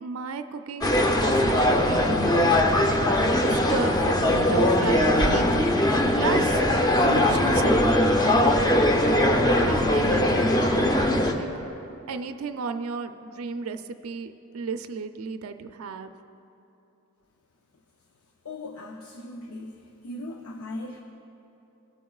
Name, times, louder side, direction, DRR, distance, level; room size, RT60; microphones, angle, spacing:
voice 1, 0.0-2.6 3.4-4.2 4.5-5.8 6.1-6.6 7.0-8.0 9.5-11.5 12.1-16.1, right 5 dB, 75° right, 8 dB, 0.4 m, -33 dB
sound 1, 0.8-11.3, left 1 dB, 20° left, 0.6 m, -21 dB
voice 2, 18.4-19.8 20.0-21.0, left 2 dB, 90° left, 3 dB, 0.6 m, -38 dB
17.5 x 8.3 x 2.4 m, 2.9 s
head